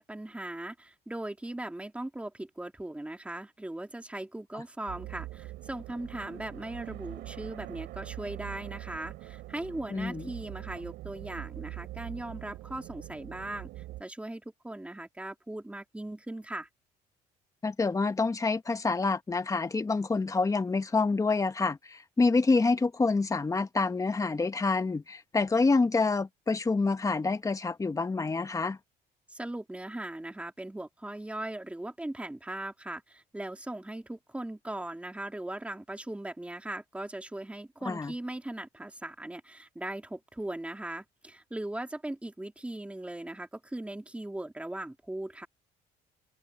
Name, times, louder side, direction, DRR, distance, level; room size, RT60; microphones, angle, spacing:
voice 1, 0.0-16.7 29.3-45.5, right 1 dB, 5° right, 3.0 m, -39 dB
sound 1, 4.9-14.0, right 17 dB, 85° right, 4.5 m, -43 dB
voice 2, 9.9-10.3 17.6-28.8 37.8-38.1, left 3 dB, 20° left, 1.6 m, -27 dB
open air
cardioid pair, 110°, 17 cm